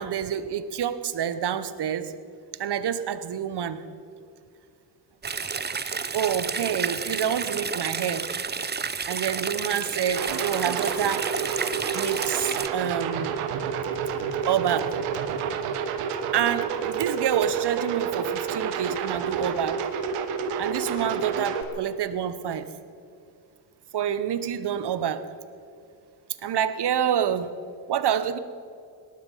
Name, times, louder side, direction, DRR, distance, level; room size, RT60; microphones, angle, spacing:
voice 1, 0.0-2.1 2.5-3.8 6.1-8.3 9.0-11.3 11.9-13.3 14.4-15.0 16.3-19.8 20.6-22.7 23.9-25.3 26.4-27.5 27.9-28.4, right 9 dB, 50° right, 12 dB, 1.2 m, -27 dB
sound 1, 5.2-12.7, right 5 dB, 20° right, 0.7 m, -31 dB
sound 2, 10.2-21.6, right 7 dB, 85° right, 1.4 m, -29 dB
18.5 x 12.5 x 5.8 m, 2.5 s
supercardioid pair, 55°, 50 cm